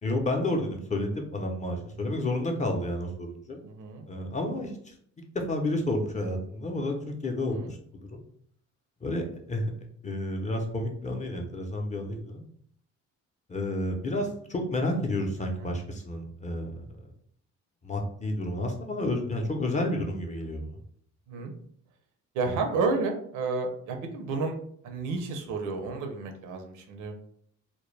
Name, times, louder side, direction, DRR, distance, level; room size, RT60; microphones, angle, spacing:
voice 1, 0.0-3.6 4.1-5.0 5.3-7.8 8.1-8.2 9.0-9.7 10.0-12.4 13.5-17.1 17.8-20.8 22.5-22.6, left 1 dB, 25° left, 2 dB, 0.5 m, -30 dB
voice 2, 3.6-4.0 7.5-7.7 11.9-12.1 15.6-15.7 21.3-21.5 22.3-24.5 24.8-27.1, right 4 dB, 90° right, 4 dB, 0.6 m, -31 dB
2.2 x 2.1 x 3.1 m, 0.64 s
cardioid pair, 90°, 30 cm